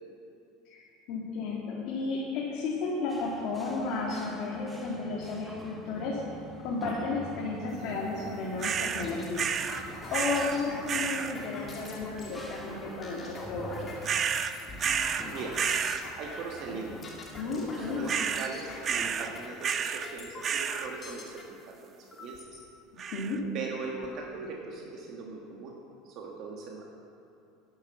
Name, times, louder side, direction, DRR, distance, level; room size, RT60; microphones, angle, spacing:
voice 1, 1.1-6.2 6.6-14.0 17.4-18.1 23.1-23.4, left 3 dB, 55° left, -4 dB, 2.0 m, -33 dB
sound 1, 3.1-18.1, equal, 5° right, 1.4 m, -46 dB
sound 2, 8.6-21.4 22.1-22.6 23.2-23.3 23.6-24.2, left 2 dB, 25° left, 1.9 m, -44 dB
sound 3, 8.6-9.1 9.4-9.8 10.1-10.6 10.9-11.3 14.0-15.3 15.5-16.0 18.1-18.5 18.8-19.3 19.6-20.1 20.4-20.9 23.0-23.4, right 7 dB, 30° right, 0.5 m, -30 dB
voice 2, 16.2-17.0 17.5-22.6 23.5-25.7 26.0-26.9, right 4 dB, 50° right, -1 dB, 1.4 m, -40 dB
10.5 x 8.4 x 7.2 m, 2.7 s
supercardioid pair, 135°, 0 cm